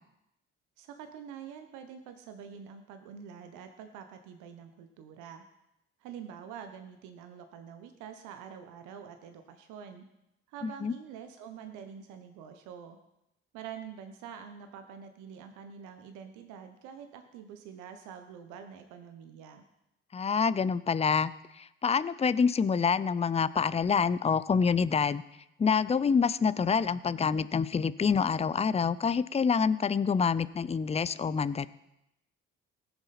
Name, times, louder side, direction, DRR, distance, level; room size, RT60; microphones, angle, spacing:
voice 1, 0.8-5.4 6.0-10.0 10.5-13.0 13.5-19.6, right 7 dB, 80° right, 7 dB, 1.0 m, -46 dB
voice 2, 10.6-10.9 20.1-21.3 21.6-25.2 25.6-31.7, left 6 dB, 20° left, 16 dB, 0.5 m, -27 dB
18.5 x 7.0 x 4.2 m, 0.85 s
hypercardioid pair, 50°, 30 cm